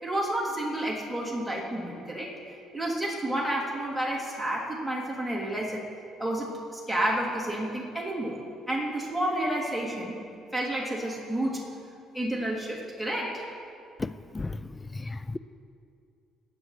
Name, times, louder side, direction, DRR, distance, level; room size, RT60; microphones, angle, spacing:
voice 1, 0.0-2.3 2.7-5.8 6.2-8.4 8.7-10.2 10.5-11.6 12.1-13.5, right 1 dB, ahead, -5 dB, 2.9 m, -30 dB
voice 2, 14.0-14.6 14.9-15.4, left 3 dB, 15° left, 14 dB, 0.3 m, -34 dB
26.5 x 9.3 x 3.2 m, 2.5 s
cardioid pair, 120°, 0 cm